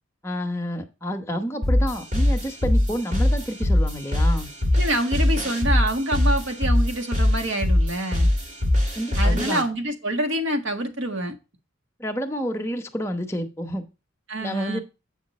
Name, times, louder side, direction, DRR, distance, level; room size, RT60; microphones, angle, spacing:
voice 1, 0.2-4.5 9.0-9.6 12.0-13.8 14.4-14.8, equal, 15° left, 1.0 m, -29 dB
sound 1, 1.6-9.6, left 1 dB, 40° right, 1.9 m, -22 dB
voice 2, 4.7-8.3 9.2-11.3 14.3-14.8, right 1 dB, 65° right, 1.6 m, -26 dB
8.5 x 5.8 x 4.2 m
head